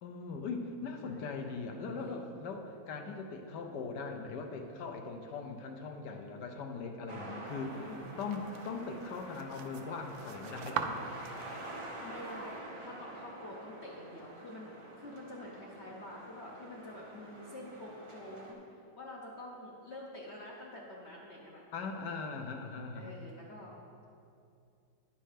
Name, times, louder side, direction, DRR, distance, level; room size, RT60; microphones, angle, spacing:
voice 1, 0.0-7.9 8.2-11.0 21.7-23.2, left 4 dB, 70° left, 5 dB, 1.2 m, -40 dB
voice 2, 1.0-2.3 7.7-8.2 12.0-18.6 19.0-21.6 22.9-23.8, left 1 dB, 50° left, -3 dB, 0.8 m, -48 dB
sound 1, 7.1-18.5, right 1 dB, 55° right, 0.3 m, -47 dB
sound 2, 7.5-12.6, right 7 dB, 80° right, 1.3 m, -43 dB
10.0 x 5.5 x 5.0 m, 2.5 s
omnidirectional pair, 2.1 m